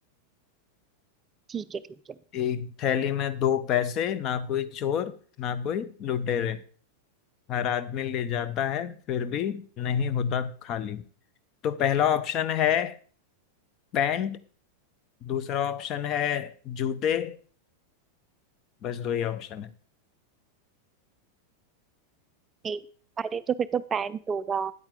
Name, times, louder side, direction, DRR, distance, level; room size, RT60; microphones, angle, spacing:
voice 1, 1.5-1.8 22.6-22.8 23.2-24.7, right 7 dB, 20° right, 0.3 m, -29 dB
voice 2, 2.3-6.6 7.5-11.0 11.6-13.0 13.9-14.4 15.2-17.4 18.8-19.7, left 9 dB, 35° left, 0.6 m, -28 dB
9.7 x 8.7 x 3.7 m
figure-of-eight pair, 90°, 0 cm